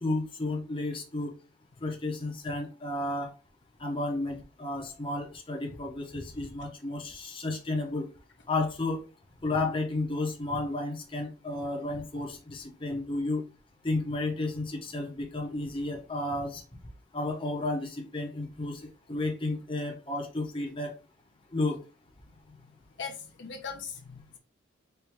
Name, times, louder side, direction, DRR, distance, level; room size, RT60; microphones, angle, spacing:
voice 1, 0.0-1.3 1.8-3.3 3.8-8.0 8.5-9.0 9.4-13.4 13.8-16.6 17.1-18.8 19.1-20.9 21.5-21.8, left 2 dB, 25° left, 0 dB, 0.8 m, -32 dB
voice 2, 23.0-24.4, left 6 dB, 60° left, 3 dB, 0.7 m, -40 dB
4.4 x 2.6 x 3.4 m, 0.33 s
head